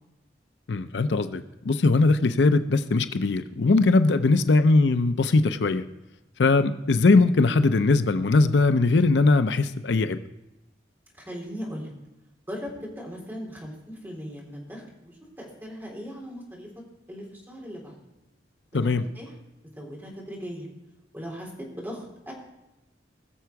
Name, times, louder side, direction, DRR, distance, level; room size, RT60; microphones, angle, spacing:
voice 1, 0.7-5.8 6.4-10.2 18.7-19.1, left 3 dB, 80° left, 11 dB, 0.6 m, -20 dB
voice 2, 4.1-4.5 6.9-7.0 11.1-11.9 12.5-16.7 17.1-18.0 18.7-19.3 19.8-20.7 21.1-22.3, equal, 10° right, -3 dB, 3.8 m, -39 dB
20.5 x 6.9 x 4.6 m, 0.97 s
head